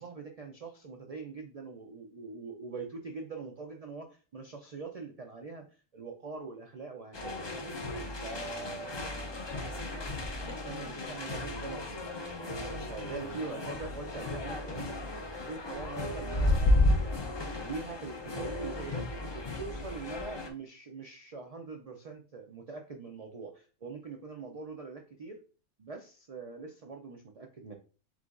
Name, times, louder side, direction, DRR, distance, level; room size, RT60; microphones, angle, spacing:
voice 1, 0.0-7.8 8.2-15.0 15.5-19.1 19.3-25.4 25.8-27.8, right 4 dB, 70° right, 4 dB, 0.3 m, -43 dB
sound 1, 7.1-20.5, left 1 dB, 45° left, 0.3 m, -33 dB
4.8 x 3.8 x 2.4 m, 0.37 s
omnidirectional pair, 1.3 m